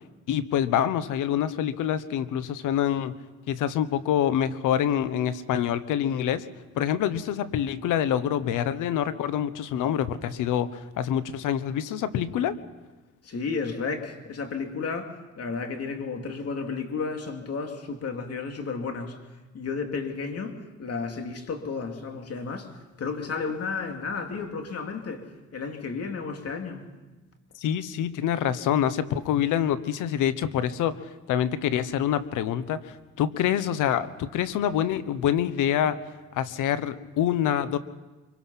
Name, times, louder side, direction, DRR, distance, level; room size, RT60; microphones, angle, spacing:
voice 1, 0.3-3.2 3.5-6.5 6.7-12.6 27.6-36.0 36.3-37.8, left 10 dB, 90° left, 1.2 m, -26 dB
voice 2, 13.2-19.2 19.5-26.8, left 4 dB, 55° left, 3.2 m, -33 dB
25.0 x 23.5 x 5.9 m
cardioid pair, 90°, 30 cm